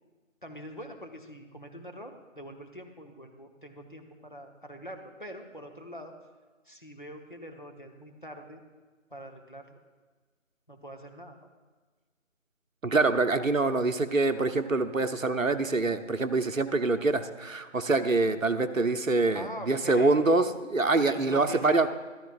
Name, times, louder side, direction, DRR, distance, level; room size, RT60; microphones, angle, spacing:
voice 1, 0.4-6.1 6.7-8.6 9.1-9.8 10.7-11.4 19.3-20.2 21.0-21.9, equal, 40° left, 4 dB, 1.0 m, -44 dB
voice 2, 12.8-21.9, right 3 dB, 80° right, 9 dB, 0.9 m, -25 dB
14.0 x 13.0 x 2.5 m, 1.3 s
figure-of-eight pair, 170°, 39 cm